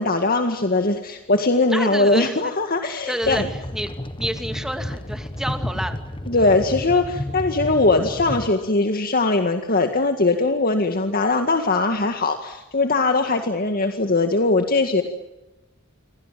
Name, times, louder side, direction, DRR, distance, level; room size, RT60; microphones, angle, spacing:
voice 1, 0.0-3.5 6.3-15.0, left 3 dB, 45° left, 6 dB, 2.0 m, -20 dB
voice 2, 1.7-2.5 3.1-3.9 4.2-6.0, equal, 5° right, 7 dB, 2.5 m, -29 dB
sound 1, 3.2-8.5, left 1 dB, 25° left, 1.7 m, -31 dB
28.5 x 25.0 x 7.6 m, 1.0 s
head